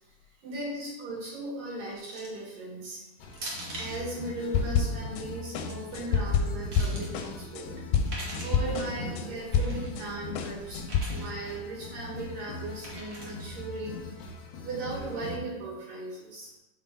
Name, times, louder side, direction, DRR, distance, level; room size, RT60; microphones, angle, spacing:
voice 1, 0.4-3.0 3.8-7.7 8.3-10.8 11.1-14.0 14.6-16.5, right 2 dB, 85° right, -5 dB, 3.6 m, -37 dB
sound 1, 2.1-2.4 3.3-4.0 5.4-5.7 6.3-7.1 7.9-8.6 9.5-9.9 10.8-11.3 12.8-13.4, right 1 dB, 65° right, 0.9 m, -41 dB
sound 2, 3.2-15.4, left 2 dB, 75° left, 1.5 m, -41 dB
sound 3, 4.5-5.3 5.5-10.0 10.4-11.0, left 6 dB, 90° left, 2.2 m, -27 dB
6.1 x 4.4 x 3.8 m, 0.96 s
omnidirectional pair, 3.7 m